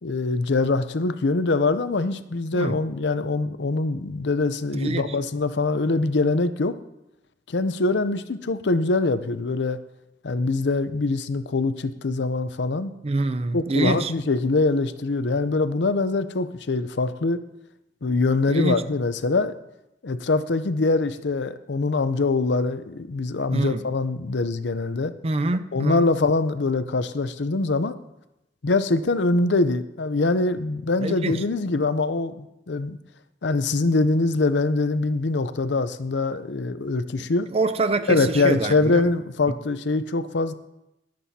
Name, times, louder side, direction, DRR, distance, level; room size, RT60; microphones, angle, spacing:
voice 1, 0.0-6.7 7.5-9.8 10.2-12.9 13.5-17.4 18.0-19.5 20.0-25.1 25.7-27.9 28.6-33.0 33.4-37.5 38.1-40.5, left 3 dB, 80° left, 0.6 m, -23 dB
voice 2, 4.7-5.1 13.0-14.1 18.5-18.8 23.5-23.8 25.2-26.1 31.0-31.4 37.2-37.3 37.5-39.0, right 2 dB, 35° right, 0.5 m, -25 dB
22.0 x 7.7 x 2.8 m
head